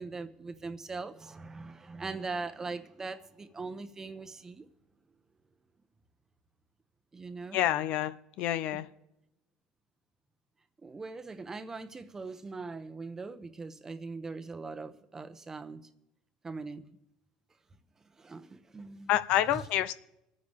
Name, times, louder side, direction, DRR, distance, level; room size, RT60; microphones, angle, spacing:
voice 1, 0.0-4.7 7.1-7.6 8.7-8.8 10.8-15.9 16.4-16.9 18.1-19.1 19.5-19.6, right 4 dB, 20° right, 1.0 m, -41 dB
voice 2, 7.5-8.9 19.1-19.9, left 13 dB, 65° left, 0.6 m, -28 dB
24.5 x 9.7 x 3.5 m
supercardioid pair, 100°, 2 cm